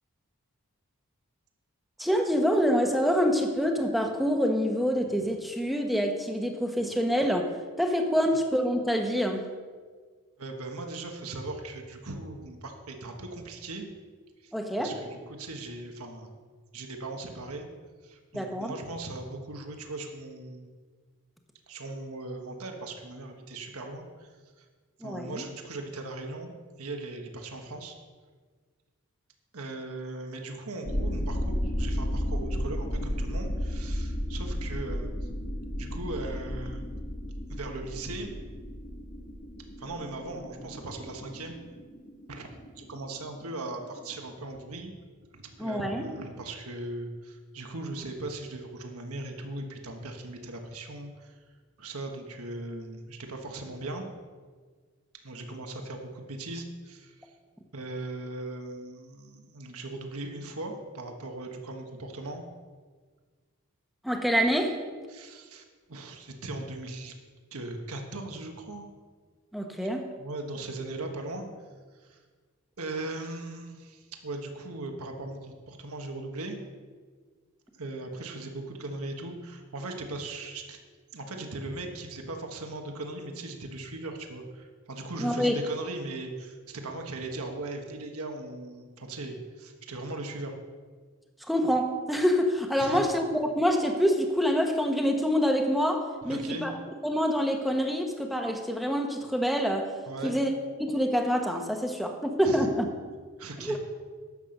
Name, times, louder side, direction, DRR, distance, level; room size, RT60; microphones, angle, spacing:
voice 1, 2.0-7.5 7.8-9.5 14.5-14.9 18.3-18.7 25.0-25.4 45.6-46.0 64.0-64.8 69.5-70.1 85.2-85.5 91.5-96.7 97.0-99.9 100.2-100.5 100.8-102.9 103.6-103.8, equal, ahead, 3 dB, 1.1 m, -26 dB
voice 2, 10.4-13.9 14.4-14.5 14.8-16.4 16.7-17.7 18.0-20.7 21.7-24.3 24.6-24.7 25.0-26.5 26.8-27.9 29.5-35.3 35.8-36.8 37.5-38.3 39.8-41.6 42.3-42.5 42.8-44.9 45.3-51.4 51.8-54.0 55.2-57.3 57.7-62.4 65.1-65.6 65.9-67.1 67.5-68.8 69.8-69.9 70.2-71.4 72.0-72.2 72.8-76.6 77.7-80.9 81.1-90.5 92.8-93.0 96.3-96.7 100.1-100.3 102.4-102.7 103.4-103.8, right 2 dB, 80° right, 3 dB, 1.4 m, -39 dB
sound 1, 30.8-44.2, equal, 35° left, 1.3 m, -34 dB
11.0 x 7.7 x 6.6 m, 1.5 s
head